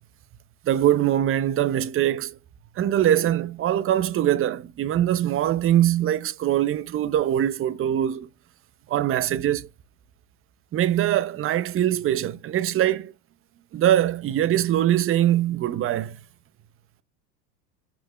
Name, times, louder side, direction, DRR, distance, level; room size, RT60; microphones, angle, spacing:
voice 1, 0.7-2.3 2.8-8.3 8.9-9.7 10.7-13.1 13.7-16.1, right 11 dB, 30° right, 0.7 m, -22 dB
6.0 x 5.5 x 3.1 m
hypercardioid pair, 85°, 46 cm